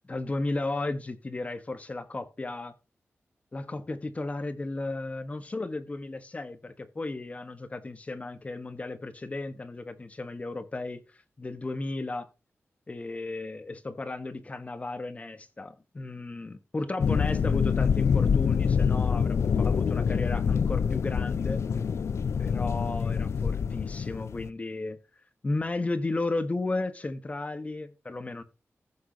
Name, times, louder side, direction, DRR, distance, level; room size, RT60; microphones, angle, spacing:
voice 1, 0.1-2.7 3.5-11.0 11.4-12.3 12.9-21.6 22.4-25.0 25.4-28.4, left 2 dB, 30° left, 1.3 m, -34 dB
sound 1, 17.0-24.5, left 6 dB, 70° left, 0.4 m, -26 dB
15.0 x 6.4 x 2.9 m
wide cardioid pair, 150°, 5 cm